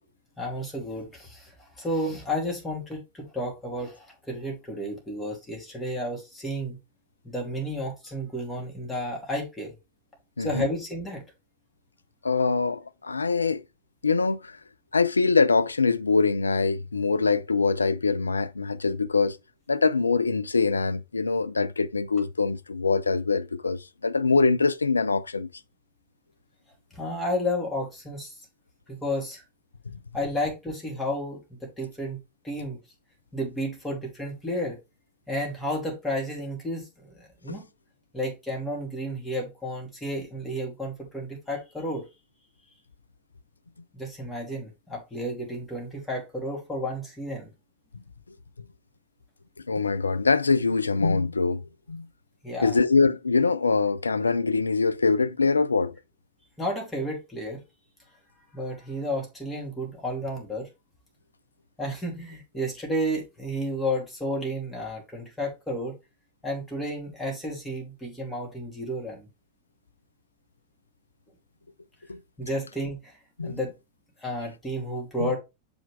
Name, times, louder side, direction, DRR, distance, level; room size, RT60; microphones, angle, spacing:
voice 1, 0.4-1.5 1.8-6.8 7.2-9.7 10.4-11.2 26.9-28.3 28.9-29.4 30.1-32.2 32.4-32.8 33.3-34.8 35.3-37.7 38.1-42.0 43.9-47.5 52.4-52.8 56.6-57.6 58.5-60.7 61.8-65.9 66.4-69.3 72.4-73.1 73.4-73.7 74.2-75.4, equal, 10° left, 3.0 m, -32 dB
voice 2, 10.4-10.7 12.2-13.6 14.0-14.5 14.9-19.4 19.7-25.5 37.5-37.6 49.7-51.6 51.9-52.1 52.6-55.9 72.1-72.2 73.4-73.6 75.2-75.3, left 4 dB, 80° left, 0.4 m, -23 dB
7.1 x 5.2 x 3.4 m
figure-of-eight pair, 90°, 0 cm